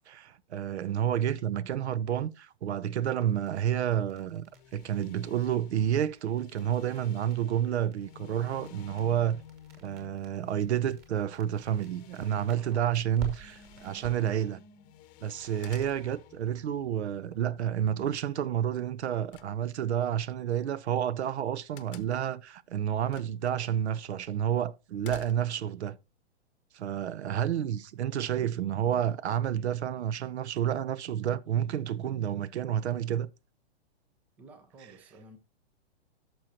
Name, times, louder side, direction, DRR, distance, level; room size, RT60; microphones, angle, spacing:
voice 1, 0.0-4.5 4.7-9.4 9.8-14.6 15.2-26.0 26.7-33.3, right 10 dB, 75° right, 0.7 m, -30 dB
sound 1, 3.0-14.4, right 5 dB, 30° right, 2.3 m, -49 dB
sound 2, 4.5-18.1, left 9 dB, 25° left, 0.9 m, -53 dB
voice 2, 12.5-12.9 34.4-35.4, right 2 dB, 5° right, 0.3 m, -52 dB
sound 3, 12.9-13.6 15.6-16.3 19.3-20.1 21.8-22.4 23.1-23.5 23.9-24.0 25.0-25.7, left 11 dB, 50° left, 0.8 m, -50 dB
11.5 x 6.2 x 2.8 m
hypercardioid pair, 145°, 34 cm